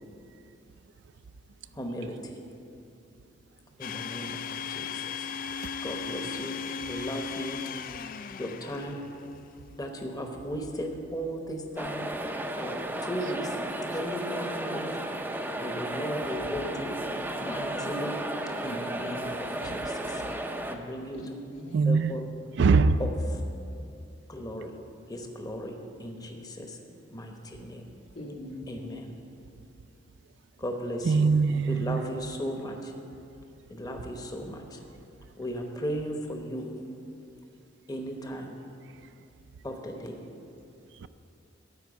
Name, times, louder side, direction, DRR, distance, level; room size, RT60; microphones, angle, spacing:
voice 1, 1.7-2.4 3.8-5.3 5.8-6.6 6.9-7.6 8.4-9.0 9.8-12.1 12.6-13.6 13.9-14.9 15.6-17.0 17.4-18.1 18.6-20.2 20.7-21.2 21.9-22.3 23.0-23.1 24.3-24.7 25.1-26.8 27.1-27.8 28.7-29.0 30.6-31.3 31.7-32.9 33.7-34.8 35.4-36.7 37.9-38.6 39.6-40.2, equal, 20° left, 3 dB, 0.9 m, -36 dB
Domestic sounds home sounds, 3.8-9.3, left 6 dB, 45° left, 0.3 m, -37 dB
sound 1, 11.8-20.8, right 1 dB, 10° right, 0.5 m, -34 dB
voice 2, 21.1-22.0 28.1-29.3, equal, 80° left, -3 dB, 1.9 m, -42 dB
voice 3, 21.7-22.2 22.6-23.0 31.0-32.0 41.0-41.1, right 4 dB, 65° right, 13 dB, 0.4 m, -22 dB
12.5 x 4.6 x 8.3 m, 2.6 s
head